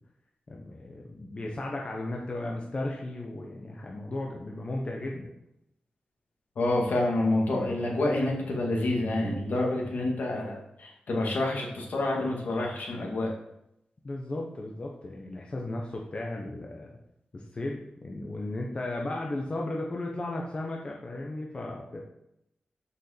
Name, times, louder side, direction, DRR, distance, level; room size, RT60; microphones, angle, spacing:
voice 1, 0.5-5.3 14.0-17.0 17.3-22.0, left 2 dB, 35° left, -1 dB, 1.1 m, -35 dB
voice 2, 6.6-13.3, left 2 dB, 75° left, -1 dB, 2.5 m, -28 dB
6.6 x 5.5 x 6.7 m, 0.81 s
wide cardioid pair, 140°, 3 cm